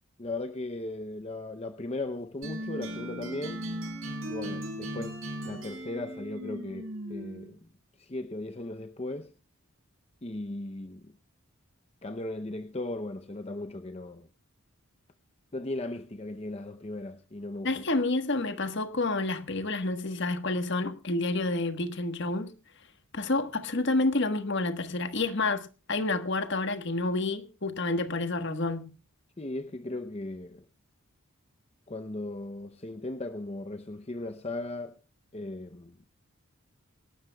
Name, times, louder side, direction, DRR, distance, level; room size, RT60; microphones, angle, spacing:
voice 1, 0.2-3.7 4.2-7.6 8.0-9.3 10.2-11.2 12.0-14.3 15.5-17.9 29.4-30.6 31.9-35.0 35.3-36.0, left 2 dB, 30° left, 0.7 m, -37 dB
sound 1, 2.4-7.5, right 1 dB, 65° right, 6.6 m, -37 dB
voice 2, 17.6-22.5 23.1-28.9, left 2 dB, 50° left, 1.4 m, -29 dB
26.0 x 12.5 x 2.3 m
head